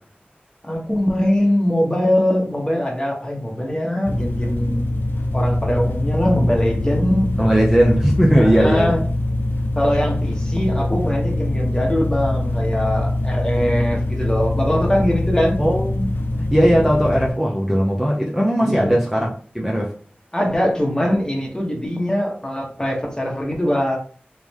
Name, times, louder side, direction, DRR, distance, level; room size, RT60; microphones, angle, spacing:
voice 1, 0.6-4.9 5.3-7.4 8.3-9.0 9.8-15.6 18.6-19.0 20.3-24.0, equal, 20° left, 1.3 m, -22 dB
sound 1, 4.0-17.3, left 1 dB, 70° left, 0.6 m, -23 dB
voice 2, 7.4-8.9 15.6-19.9, equal, 5° right, 0.7 m, -18 dB
3.9 x 3.1 x 3.5 m
wide cardioid pair, 65°, 4 cm